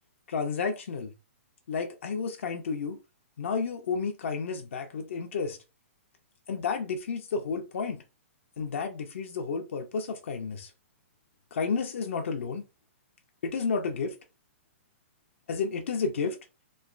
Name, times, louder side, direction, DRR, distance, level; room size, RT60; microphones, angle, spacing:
voice 1, 0.3-1.1 1.7-3.0 3.4-5.6 6.5-8.0 8.6-10.7 11.5-12.7 13.4-14.2 15.5-16.4, left 5 dB, 70° left, 0.6 m, -31 dB
3.2 x 3.0 x 2.4 m
hypercardioid pair, 165°, 7 cm